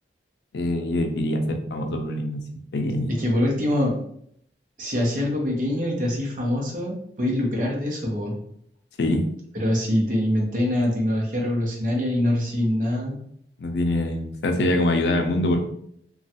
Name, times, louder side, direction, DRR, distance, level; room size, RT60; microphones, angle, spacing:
voice 1, 0.5-2.5 2.7-3.1 9.0-9.2 13.6-15.6, left 1 dB, 70° left, 5 dB, 0.4 m, -24 dB
voice 2, 3.2-4.0 4.8-8.4 9.5-13.2, left 1 dB, 50° right, -1 dB, 0.8 m, -24 dB
3.1 x 2.3 x 2.8 m, 0.69 s
head